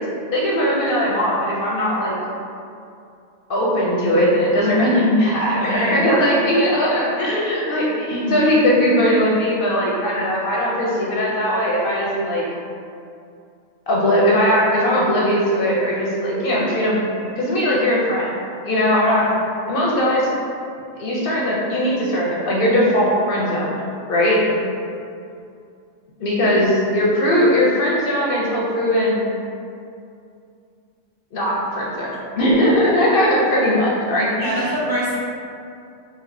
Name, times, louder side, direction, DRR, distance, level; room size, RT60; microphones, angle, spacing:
voice 1, 0.3-2.2 3.5-12.4 13.9-17.0 17.4-18.4 18.6-19.3 19.7-20.3 21.0-23.8 24.1-24.4 26.2-29.2 31.3-34.7, equal, 55° left, -5 dB, 0.7 m, -19 dB
voice 2, 5.5-6.0 8.1-8.5 19.2-19.4 24.6-24.7 34.3-35.2, right 1 dB, 55° right, -8 dB, 0.5 m, -26 dB
4.1 x 2.6 x 2.6 m, 2.5 s
omnidirectional pair, 1.3 m